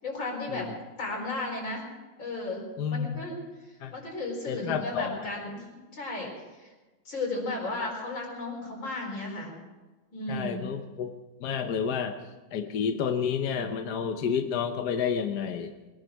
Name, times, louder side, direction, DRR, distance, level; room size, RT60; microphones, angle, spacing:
voice 1, 0.0-0.7 1.0-1.8 2.2-3.4 3.9-5.6 5.9-6.7 7.0-9.5 10.1-10.6, left 2 dB, 80° left, -1 dB, 5.2 m, -34 dB
voice 2, 2.8-3.2 3.8-3.9 4.5-5.2 10.3-11.1 11.4-12.2 12.5-15.7, left 7 dB, 60° left, 6 dB, 1.4 m, -30 dB
21.5 x 10.5 x 6.4 m, 1.2 s
omnidirectional pair, 2.1 m